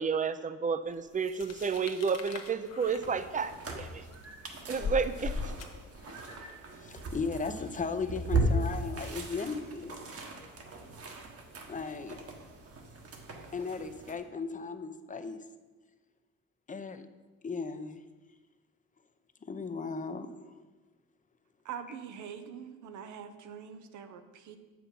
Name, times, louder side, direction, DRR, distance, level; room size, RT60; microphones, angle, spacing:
voice 1, 0.0-4.0 4.7-5.5, right 5 dB, 25° right, 12 dB, 0.6 m, -31 dB
sound 1, 1.2-6.3, left 4 dB, 55° left, 1.1 m, -40 dB
sound 2, 2.8-14.2, right 2 dB, 50° right, 1.5 m, -37 dB
voice 2, 6.8-10.0 11.7-12.2 13.5-15.4 16.7-17.1 17.4-18.0 19.4-20.6, left 4 dB, 25° left, 10 dB, 0.7 m, -36 dB
voice 3, 21.6-24.6, right 7 dB, 75° right, 9 dB, 0.8 m, -44 dB
7.2 x 6.0 x 5.4 m, 1.3 s
cardioid pair, 90°, 30 cm